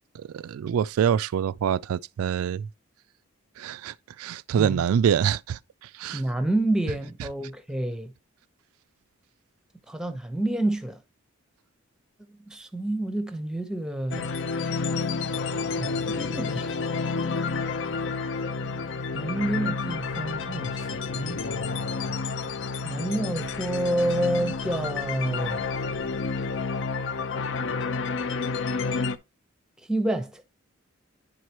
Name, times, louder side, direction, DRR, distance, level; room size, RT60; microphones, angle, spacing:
voice 1, 0.1-2.7 3.6-6.2, right 8 dB, 85° right, 0.3 m, -26 dB
voice 2, 6.1-8.1 9.9-11.0 12.3-14.3 15.8-16.7 19.1-21.4 22.8-25.7 29.9-30.4, right 1 dB, 5° right, 0.8 m, -28 dB
sound 1, 14.1-29.2, left 4 dB, 55° left, 0.5 m, -30 dB
10.0 x 4.7 x 2.9 m
head